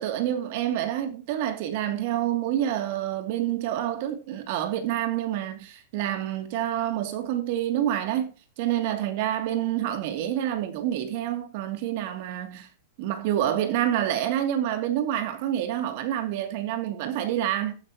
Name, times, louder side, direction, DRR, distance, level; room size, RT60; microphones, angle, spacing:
voice 1, 0.0-8.3 8.6-12.7 13.0-17.8, right 11 dB, 55° right, 2.7 m, -27 dB
14.5 x 10.0 x 3.0 m
supercardioid pair, 140°, 0 cm